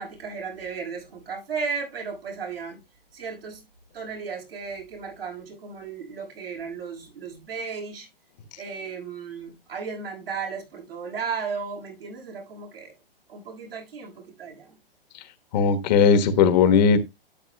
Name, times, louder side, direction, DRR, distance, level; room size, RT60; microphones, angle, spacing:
voice 1, 0.0-2.8 3.1-3.6 3.9-8.1 8.6-12.9 13.3-14.8, right 5 dB, 75° right, 6.2 m, -35 dB
voice 2, 15.5-17.0, left 6 dB, 45° left, 1.3 m, -18 dB
11.5 x 9.1 x 2.2 m
hypercardioid pair, 130°, 30 cm